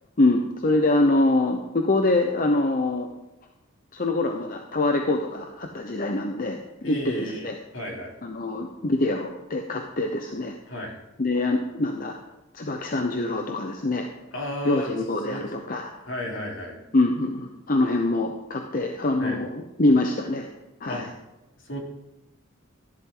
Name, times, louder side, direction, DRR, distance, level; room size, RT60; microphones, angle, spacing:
voice 1, 0.2-3.1 3.9-7.5 8.2-10.5 11.2-12.2 12.5-14.1 14.6-15.9 16.9-20.5 20.8-21.0, left 2 dB, 45° left, 3 dB, 0.8 m, -24 dB
voice 2, 6.8-8.2 10.7-10.9 14.3-14.9 15.2-15.5 16.0-16.8 19.2-19.4 20.9-21.0 21.6-21.8, left 1 dB, 70° left, -1 dB, 2.9 m, -33 dB
14.0 x 11.0 x 3.9 m, 0.97 s
head